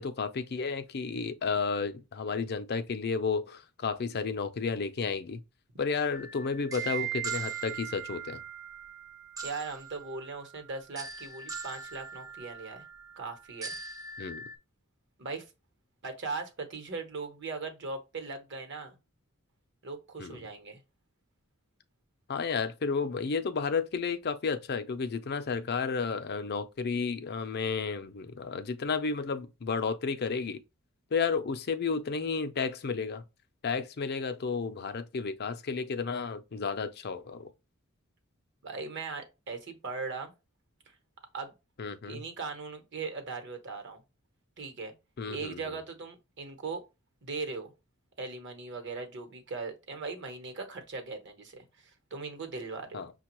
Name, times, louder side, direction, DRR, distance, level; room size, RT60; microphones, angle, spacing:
voice 1, 0.0-5.4 5.8-8.4 14.2-14.4 20.2-20.4 22.3-30.6 31.1-33.2 33.6-37.5 41.8-42.2 45.2-45.6 52.9-53.1, left 5 dB, 50° left, 0.5 m, -32 dB
sound 1, 6.1-14.6, right 7 dB, 15° right, 0.6 m, -40 dB
voice 2, 9.4-12.8 13.2-13.7 15.2-15.5 16.0-19.0 19.8-20.8 38.6-40.3 41.3-41.5 42.1-44.0 44.6-44.9 45.3-46.8 47.2-47.7 48.2-53.1, right 4 dB, 55° right, 1.0 m, -39 dB
5.9 x 2.3 x 2.9 m
head